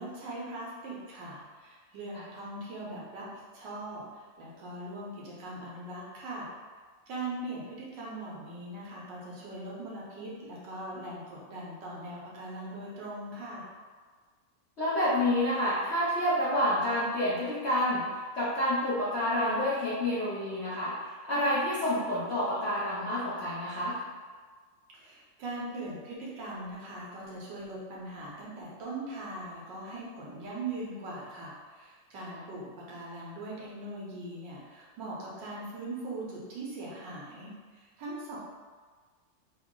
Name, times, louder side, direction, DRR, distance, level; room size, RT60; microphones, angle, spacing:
voice 1, 0.0-6.5 7.1-13.7 24.9-38.4, right 2 dB, 75° right, -5 dB, 1.5 m, -40 dB
voice 2, 14.8-24.0, left 1 dB, 60° left, -11 dB, 0.7 m, -29 dB
3.8 x 2.0 x 3.6 m, 1.5 s
omnidirectional pair, 2.0 m